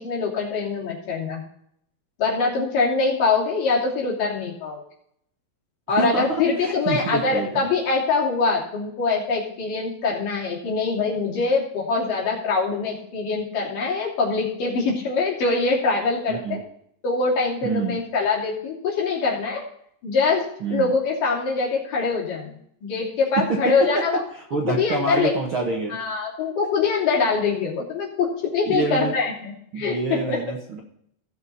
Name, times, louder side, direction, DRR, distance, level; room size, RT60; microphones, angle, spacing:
voice 1, 0.0-1.4 2.2-4.8 5.9-16.6 17.0-19.6 20.0-22.5 22.8-24.2 24.7-25.3 25.9-30.4, left 4 dB, 70° left, -4 dB, 4.5 m, -23 dB
voice 2, 6.0-7.6 16.3-16.6 17.6-18.0 20.6-20.9 23.9-24.0 24.5-25.9 28.6-29.1 29.7-30.8, right 3 dB, 50° right, 0 dB, 1.7 m, -27 dB
17.0 x 6.6 x 4.2 m, 0.70 s
omnidirectional pair, 4.0 m